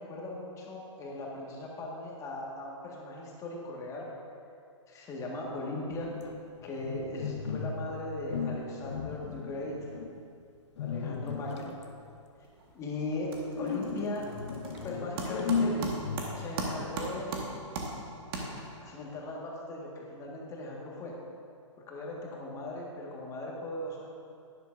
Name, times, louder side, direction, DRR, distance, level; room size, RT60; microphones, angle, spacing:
voice 1, 0.0-4.1 4.9-6.2 6.6-9.9 10.8-11.7 12.7-14.3 14.8-15.9 16.3-17.4 18.8-21.2 21.9-24.1, left 2 dB, 20° left, -2 dB, 1.7 m, -38 dB
sound 1, 5.9-7.9 8.3-10.2 10.8-11.8 13.5-16.5, left 4 dB, 60° left, 0.9 m, -35 dB
sound 2, 12.4-12.8 13.1-19.0, right 2 dB, 45° right, 1.6 m, -38 dB
12.0 x 10.5 x 2.6 m, 2.4 s
hypercardioid pair, 130°, 16 cm